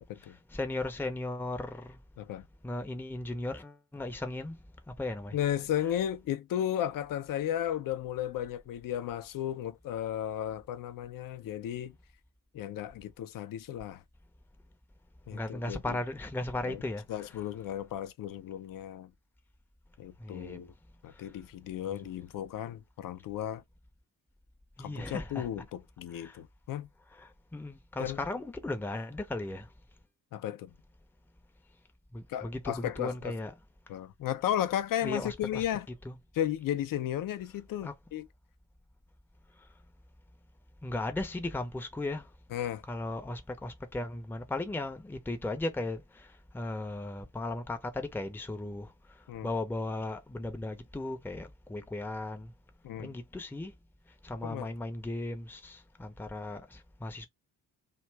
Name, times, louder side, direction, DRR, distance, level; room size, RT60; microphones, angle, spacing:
voice 1, 0.2-2.0 2.6-4.6 4.9-5.4 15.3-17.1 20.2-20.7 21.2-21.3 24.8-25.5 26.1-26.4 27.2-29.7 32.1-33.5 35.0-35.6 36.0-36.2 37.8-37.9 40.8-42.3 42.9-49.2 49.4-52.5 53.0-53.7 54.2-57.3, left 2 dB, 5° left, 0.7 m, -36 dB
voice 2, 5.3-11.9 12.5-14.0 15.3-16.0 16.6-16.8 17.1-19.1 20.0-20.7 21.0-23.6 24.8-26.9 28.0-28.2 30.3-30.7 32.3-33.3 33.9-35.9 36.3-38.3 42.5-42.8 49.3-49.5 52.8-53.2 54.4-54.7, left 11 dB, 45° left, 0.6 m, -34 dB
2.6 x 2.3 x 3.3 m
hypercardioid pair, 45°, 48 cm